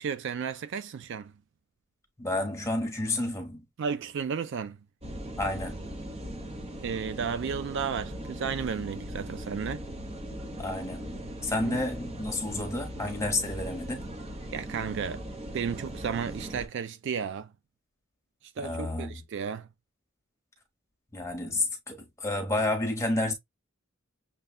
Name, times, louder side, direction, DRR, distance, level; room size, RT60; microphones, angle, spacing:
voice 1, 0.0-1.3 3.8-4.8 6.8-9.8 11.6-11.8 14.5-15.2 15.5-17.5 18.6-19.7, right 6 dB, 55° right, 0.3 m, -33 dB
voice 2, 2.2-3.6 5.4-5.9 10.6-14.1 18.6-19.2 21.1-23.3, left 2 dB, 15° left, 1.1 m, -30 dB
sound 1, 5.0-16.7, equal, 25° right, 0.8 m, -39 dB
6.6 x 2.3 x 2.3 m
head